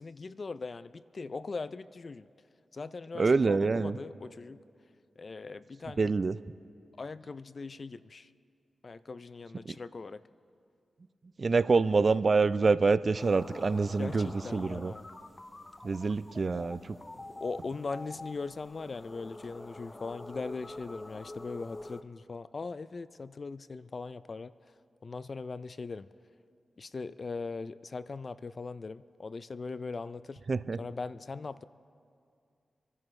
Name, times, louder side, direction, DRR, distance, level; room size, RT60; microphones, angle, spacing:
voice 1, 0.0-2.3 2.7-4.6 5.2-6.1 7.0-8.3 8.8-10.2 14.0-15.1 17.3-24.5 25.0-26.1 26.8-30.4 30.8-31.6, left 4 dB, 55° left, 15 dB, 0.4 m, -40 dB
voice 2, 3.1-4.0 6.0-6.4 11.4-14.9 15.8-16.8 30.5-30.8, right 4 dB, 55° right, 15 dB, 0.4 m, -26 dB
sound 1, 13.2-22.0, left 2 dB, 30° left, 0.8 m, -47 dB
28.0 x 10.5 x 3.2 m, 2.4 s
cardioid pair, 45°, 0 cm